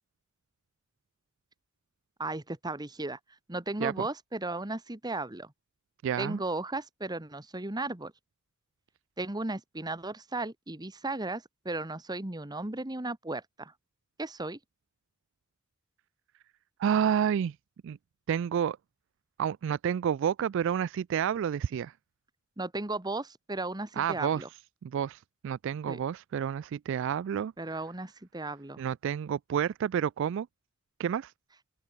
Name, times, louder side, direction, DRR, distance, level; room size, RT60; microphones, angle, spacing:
voice 1, 2.2-3.2 3.5-5.5 6.2-8.1 9.2-13.7 14.2-14.6 22.6-24.5 25.9-26.0 27.6-28.8, right 2 dB, 20° right, 1.4 m, -35 dB
voice 2, 6.0-6.4 16.8-17.6 17.8-18.0 18.3-18.8 19.4-21.9 24.0-24.4 24.8-27.5 28.8-30.5 31.0-31.3, right 8 dB, 65° right, 0.3 m, -29 dB
open air
head